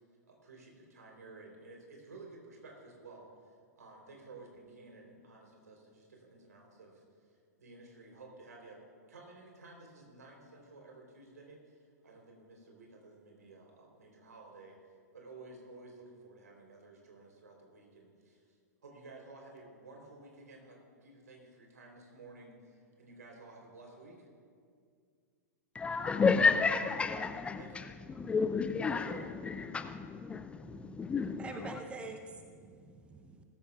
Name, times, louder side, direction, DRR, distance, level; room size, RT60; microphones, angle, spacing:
voice 1, 0.3-3.3 3.8-8.8 9.1-14.8 15.1-18.5 18.8-24.3 27.6-27.8 28.9-29.3, right 3 dB, 70° right, 3.6 m, -53 dB
voice 2, 25.7-31.8, left 5 dB, 10° left, 0.4 m, -31 dB
voice 3, 30.6-31.1 31.4-33.4, right 3 dB, 10° right, 0.7 m, -46 dB
21.0 x 14.0 x 2.4 m
figure-of-eight pair, 100°, 9 cm